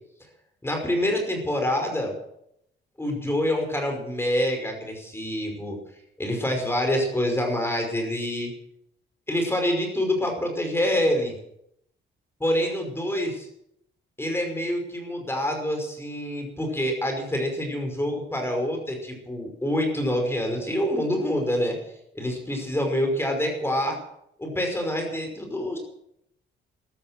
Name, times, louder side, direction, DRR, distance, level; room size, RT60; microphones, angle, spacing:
voice 1, 0.6-2.1 3.0-5.8 6.2-8.5 9.3-11.3 12.4-13.5 14.2-21.8 22.1-24.0 24.4-25.8, left 1 dB, 10° left, 3 dB, 5.4 m, -26 dB
14.5 x 12.0 x 7.6 m, 0.75 s
cardioid pair, 90°, 20 cm